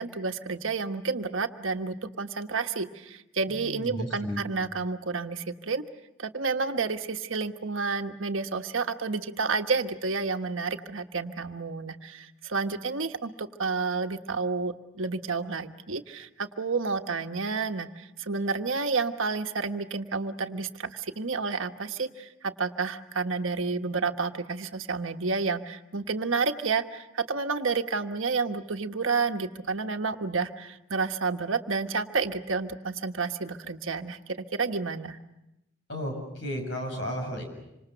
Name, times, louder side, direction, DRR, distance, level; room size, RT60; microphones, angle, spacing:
voice 1, 0.0-5.9 6.2-35.2, right 4 dB, 75° right, 6 dB, 1.4 m, -30 dB
voice 2, 3.5-4.4 35.9-37.4, equal, 60° left, 4 dB, 7.1 m, -33 dB
27.0 x 26.0 x 6.9 m, 0.88 s
head